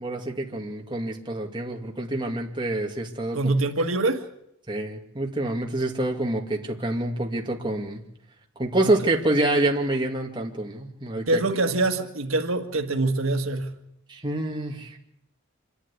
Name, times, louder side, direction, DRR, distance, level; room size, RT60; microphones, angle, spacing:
voice 1, 0.0-3.4 4.7-8.0 8.6-11.4 14.1-15.0, right 1 dB, 25° right, 2.5 m, -27 dB
voice 2, 3.3-4.2 8.8-8.9 11.3-13.7, right 2 dB, 85° right, 1.7 m, -24 dB
26.5 x 12.0 x 9.9 m
head